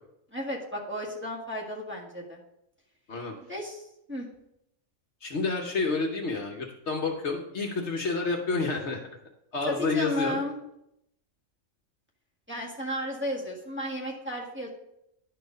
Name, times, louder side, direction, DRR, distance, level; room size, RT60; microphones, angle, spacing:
voice 1, 0.3-2.4 3.5-4.3 9.6-10.5 12.5-14.7, equal, 10° right, -4 dB, 1.6 m, -33 dB
voice 2, 5.2-9.0 9.5-10.4, left 3 dB, 60° left, 2 dB, 1.2 m, -29 dB
10.5 x 4.6 x 5.1 m, 0.80 s
omnidirectional pair, 1.4 m